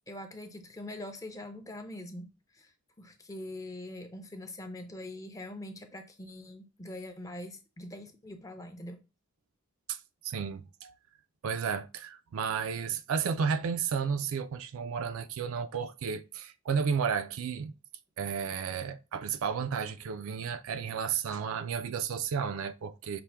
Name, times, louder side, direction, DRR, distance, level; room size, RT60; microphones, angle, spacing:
voice 1, 0.1-2.3 2.5-2.7 3.0-9.0, left 1 dB, 15° left, 0.5 m, -43 dB
voice 2, 9.9-10.9 11.4-17.7 18.2-23.2, right 6 dB, 65° right, 0.4 m, -32 dB
5.8 x 2.1 x 3.3 m
head